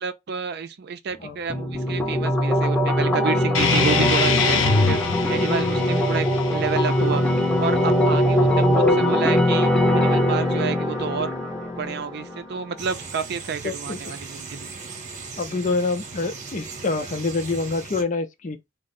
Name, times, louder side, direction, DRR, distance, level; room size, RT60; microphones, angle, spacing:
voice 1, 0.0-4.6 4.9-5.0 5.3-7.2 7.6-8.6 9.0-11.3 11.8-14.7, right 6 dB, 55° right, 0.5 m, -29 dB
sound 1, 1.5-12.5, equal, 5° left, 0.7 m, -21 dB
sound 2, 3.5-8.6, left 4 dB, 75° left, 0.8 m, -25 dB
voice 2, 8.5-9.1 13.6-14.2 15.4-18.6, left 3 dB, 40° left, 0.5 m, -26 dB
sound 3, 12.8-18.0, right 4 dB, 40° right, 0.9 m, -38 dB
3.6 x 2.0 x 4.1 m
head